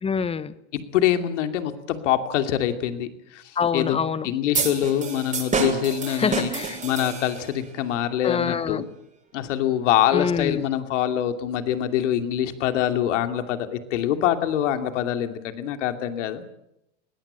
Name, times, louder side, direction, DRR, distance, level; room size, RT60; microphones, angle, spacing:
voice 1, 0.0-0.5 3.6-4.3 6.1-6.8 8.2-8.8 10.1-10.6, left 6 dB, 15° left, 17 dB, 1.0 m, -25 dB
voice 2, 0.7-3.4 3.7-4.0 4.2-6.5 6.8-8.9 9.3-16.4, left 11 dB, 75° left, 8 dB, 2.7 m, -24 dB
sound 1, 4.5-7.6, right 4 dB, 20° right, 6.6 m, -28 dB
21.5 x 18.0 x 8.8 m, 0.82 s
hypercardioid pair, 115°, 37 cm